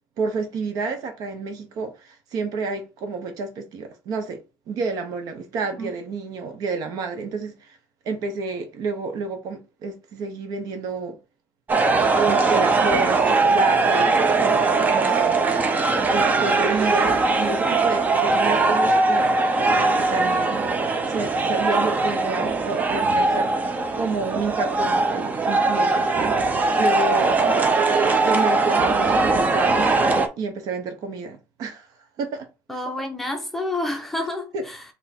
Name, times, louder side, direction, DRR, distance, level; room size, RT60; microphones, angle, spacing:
voice 1, 0.2-4.4 4.7-7.8 8.0-11.2 12.2-15.8 16.1-19.3 19.6-20.7 21.1-26.1 26.5-27.3 28.2-31.9 32.2-32.5 34.5-34.6, right 4 dB, 60° right, 1.0 m, -30 dB
sound 1, 11.7-30.3, right 3 dB, 25° right, 0.6 m, -20 dB
voice 2, 27.2-27.6 32.7-34.8, left 1 dB, 5° left, 0.9 m, -29 dB
3.5 x 2.9 x 4.3 m
cardioid pair, 135°, 7 cm